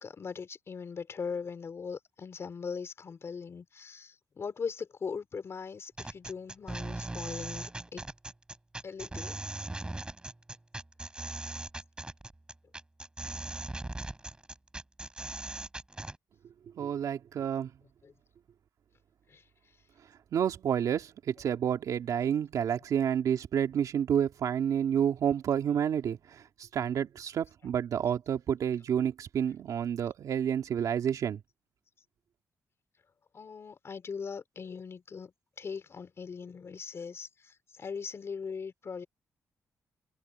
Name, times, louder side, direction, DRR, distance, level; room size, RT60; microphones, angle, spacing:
voice 1, 0.0-7.7 7.9-8.0 8.8-9.3 18.0-18.1 19.3-19.4 33.3-35.3 35.6-37.3 37.8-39.1, left 5 dB, 45° left, 4.2 m, -40 dB
sound 1, 6.0-16.2, right 2 dB, 15° right, 5.8 m, -39 dB
voice 2, 16.8-17.7 20.3-26.4 26.7-31.4, right 8 dB, 75° right, 2.6 m, -29 dB
cardioid pair, 115°, 6 cm